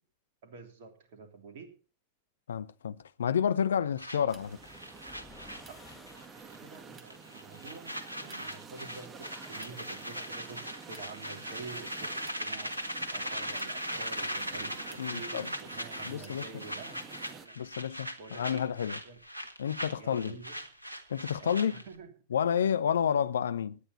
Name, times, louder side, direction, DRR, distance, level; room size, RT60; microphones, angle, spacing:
voice 1, 0.4-1.7 5.7-17.6 18.2-18.7 19.0-19.2 20.0-20.6 21.4-22.1, right 4 dB, 55° right, 3.1 m, -48 dB
voice 2, 2.5-4.6 15.0-15.5 16.0-16.6 17.6-19.0 19.6-20.4 21.1-21.7 22.3-23.8, left 8 dB, 65° left, 0.7 m, -30 dB
sound 1, 4.0-6.3 6.5-6.8 7.1-22.0, equal, 85° right, 1.5 m, -39 dB
sound 2, 4.3-6.9, left 4 dB, 15° left, 2.3 m, -56 dB
sound 3, 4.3-17.5, right 5 dB, 25° right, 2.0 m, -50 dB
18.0 x 10.0 x 4.3 m
figure-of-eight pair, 90°, 0 cm